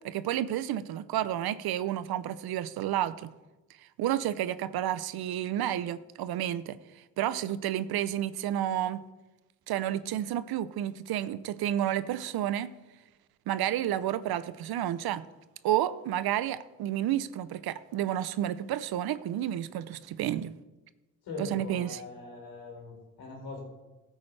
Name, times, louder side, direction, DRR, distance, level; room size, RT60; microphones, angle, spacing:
voice 1, 0.0-3.3 4.0-6.8 7.2-9.0 9.7-12.7 13.5-15.2 15.6-20.5 21.4-22.0, right 12 dB, 80° right, 16 dB, 0.6 m, -30 dB
voice 2, 21.2-23.6, left 3 dB, 85° left, -1 dB, 3.9 m, -41 dB
15.0 x 8.6 x 3.3 m, 1.1 s
supercardioid pair, 50°, 37 cm